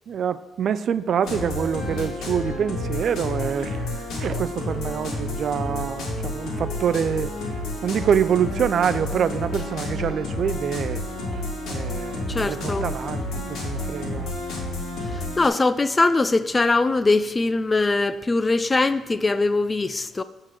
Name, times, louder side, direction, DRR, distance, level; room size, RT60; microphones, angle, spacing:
voice 1, 0.1-7.3 7.8-11.0 11.3-11.4 11.7-14.3, right 8 dB, 60° right, 0.3 m, -26 dB
sound 1, 1.2-15.5, left 2 dB, 75° left, 1.8 m, -30 dB
voice 2, 12.3-12.8 15.4-20.2, left 3 dB, 25° left, 0.4 m, -21 dB
9.0 x 3.8 x 6.0 m
cardioid pair, 90°, 0 cm